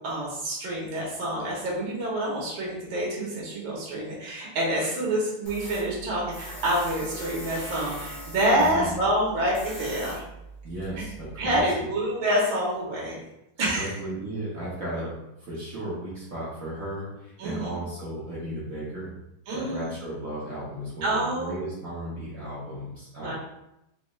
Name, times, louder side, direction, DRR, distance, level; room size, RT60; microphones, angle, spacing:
voice 1, 0.0-10.2 11.4-13.2 13.6-13.9 17.4-17.8 19.5-19.9 21.0-21.6 23.2-23.3, right 1 dB, 85° right, -5 dB, 1.7 m, -27 dB
Tools, 5.5-11.6, right 1 dB, 40° left, 0.5 m, -41 dB
voice 2, 8.6-9.0 10.6-11.9 13.6-19.1 19.5-23.3, right 1 dB, 55° right, -7 dB, 1.1 m, -35 dB
4.0 x 3.1 x 2.3 m, 0.87 s
omnidirectional pair, 2.0 m